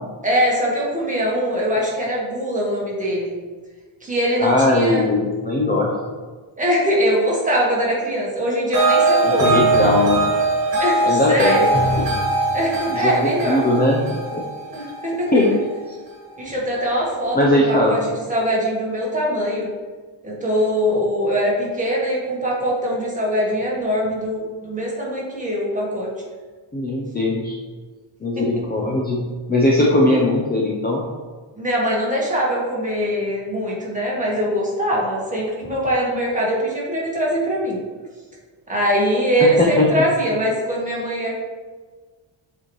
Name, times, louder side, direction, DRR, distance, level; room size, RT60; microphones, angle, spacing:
voice 1, 0.2-3.3 4.0-5.1 6.6-9.5 10.8-11.7 12.5-13.6 14.7-15.3 16.4-18.0 18.3-19.7 20.2-26.1 28.4-28.5 31.6-37.8 38.7-41.3, equal, 15° right, -4 dB, 1.6 m, -22 dB
voice 2, 4.4-5.9 9.2-10.2 11.0-11.6 12.0-12.1 12.9-14.4 15.3-15.5 15.9-16.0 17.3-17.9 26.7-27.6 28.2-29.2 29.5-31.0 39.4-39.9, left 1 dB, 20° left, -3 dB, 0.6 m, -19 dB
sound 1, 8.7-15.9, right 2 dB, 45° right, 1.8 m, -21 dB
7.7 x 4.4 x 3.1 m, 1.4 s
wide cardioid pair, 150°, 47 cm